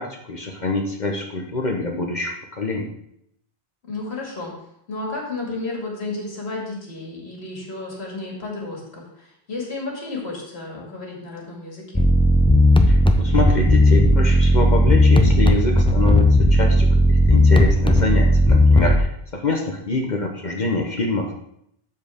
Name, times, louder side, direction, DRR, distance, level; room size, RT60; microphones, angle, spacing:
voice 1, 0.0-2.9 12.9-21.3, left 3 dB, 45° left, 1 dB, 1.0 m, -25 dB
voice 2, 3.8-4.5 4.9-12.0, left 3 dB, 85° left, -2 dB, 2.4 m, -32 dB
sound 1, 11.9-19.0, left 1 dB, 10° left, 0.4 m, -15 dB
12.5 x 4.6 x 3.5 m, 0.74 s
omnidirectional pair, 1.1 m